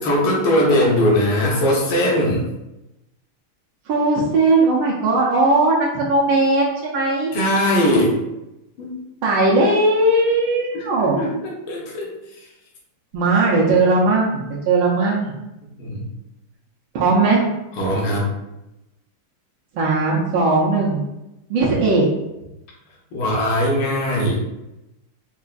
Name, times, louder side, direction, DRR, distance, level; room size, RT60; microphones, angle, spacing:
voice 1, 0.0-2.5 7.3-8.2 8.8-9.0 10.7-10.8 11.2-12.1 15.8-16.1 17.7-18.3 23.1-24.4, left 1 dB, 75° left, -2 dB, 1.7 m, -20 dB
voice 2, 3.9-7.3 9.2-11.2 13.1-15.4 16.9-17.5 19.8-21.0 21.5-22.1, right 2 dB, 75° right, -5 dB, 1.4 m, -18 dB
4.5 x 2.4 x 2.3 m, 0.93 s
omnidirectional pair, 2.4 m